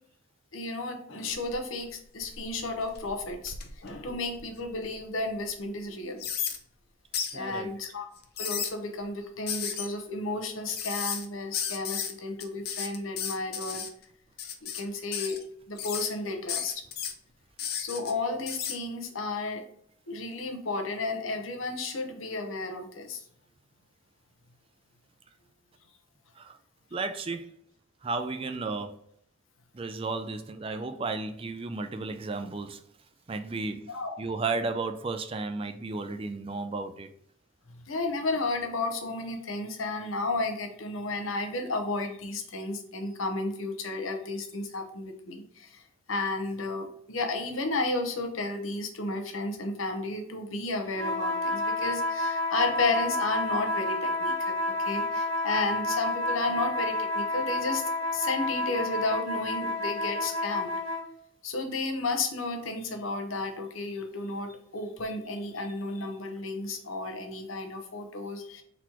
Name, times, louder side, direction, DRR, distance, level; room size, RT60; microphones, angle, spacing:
voice 1, 0.5-3.5 3.8-6.2 7.3-8.1 8.4-13.9 14.7-15.4 15.7-16.7 17.8-19.6 20.1-23.2 33.9-34.2 37.9-45.4 46.1-54.6 54.9-57.8 58.1-60.8 61.4-68.6, left 2 dB, 80° left, 4 dB, 0.9 m, -32 dB
sound 1, 1.3-1.8 2.2-4.9 5.4-5.5 6.2-6.6 7.1-7.4 8.2-8.7 9.5-9.9 10.7-11.3 11.5-12.1 12.4-13.9 14.4-14.8 15.1-15.4 15.8-16.1 16.5-17.1 17.6-18.1 18.5-18.8, left 8 dB, 50° left, 0.6 m, -34 dB
voice 2, 7.3-7.8 26.4-26.6 26.9-27.5 28.0-29.0 29.7-32.8 33.3-37.1, right 3 dB, 25° right, 8 dB, 0.3 m, -33 dB
sound 2, 50.9-61.1, left 2 dB, 65° right, 1.1 m, -30 dB
4.1 x 2.9 x 4.4 m, 0.68 s
head